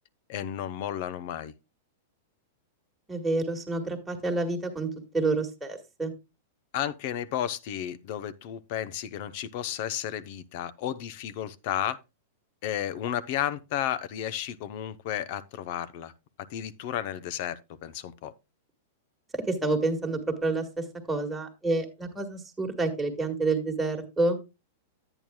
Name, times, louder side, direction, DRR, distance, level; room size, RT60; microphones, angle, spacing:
voice 1, 0.3-1.5 6.7-12.0 12.6-16.1 16.5-18.3, left 10 dB, 50° left, 0.6 m, -33 dB
voice 2, 3.1-6.1 19.3-24.4, right 3 dB, 5° right, 1.6 m, -28 dB
11.0 x 8.9 x 2.2 m
supercardioid pair, 150°, 0 cm